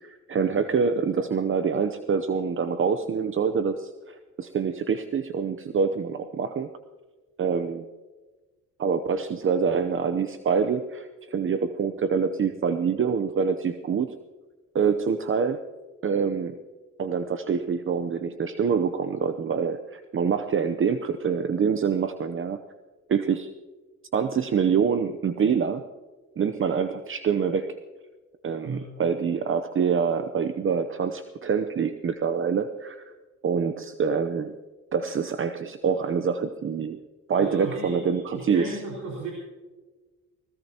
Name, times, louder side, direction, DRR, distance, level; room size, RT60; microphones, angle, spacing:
voice 1, 0.0-6.7 7.4-7.9 8.8-14.2 14.7-15.6 16.0-16.6 17.0-22.6 23.1-23.5 24.1-25.8 26.4-27.8 28.4-33.0 33.4-34.6 34.9-37.0 37.3-38.8, right 6 dB, 45° right, 8 dB, 0.8 m, -26 dB
voice 2, 37.4-39.3, right 3 dB, 75° right, -2 dB, 5.3 m, -35 dB
19.5 x 19.0 x 3.0 m, 1.3 s
cardioid pair, 90°, 30 cm